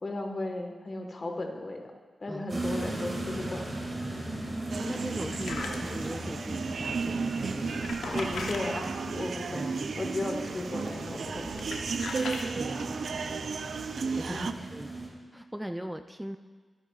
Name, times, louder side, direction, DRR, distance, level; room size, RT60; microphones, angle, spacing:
voice 1, 0.0-1.9 2.2-3.7 8.1-9.6 10.0-11.6 14.3-14.6, left 2 dB, 45° left, 3 dB, 1.4 m, -35 dB
voice 2, 2.3-2.7 4.8-8.3 9.2-10.0 12.6-13.4 14.2-14.9 15.3-16.4, equal, 5° right, 8 dB, 0.4 m, -40 dB
sound 1, 2.5-15.1, right 1 dB, 40° right, 2.2 m, -38 dB
sound 2, 4.7-14.5, right 5 dB, 75° right, 0.4 m, -34 dB
sound 3, 4.9-6.1 7.5-8.6 10.8-11.1 11.4-12.5, left 4 dB, 85° left, 0.8 m, -39 dB
14.0 x 9.3 x 2.4 m, 1.4 s
cardioid pair, 50°, 0 cm